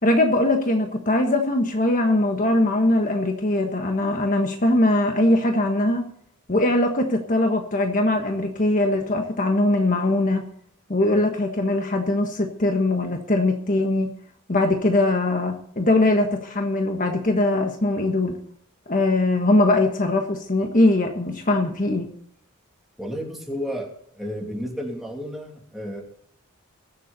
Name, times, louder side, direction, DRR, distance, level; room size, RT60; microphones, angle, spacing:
voice 1, 0.0-6.1 6.5-10.4 10.9-14.1 14.5-18.4 18.9-22.1, left 2 dB, 40° left, 3 dB, 1.4 m, -21 dB
voice 2, 23.0-23.9 24.1-26.0, equal, ahead, -1 dB, 2.8 m, -32 dB
22.5 x 7.5 x 4.1 m, 0.65 s
head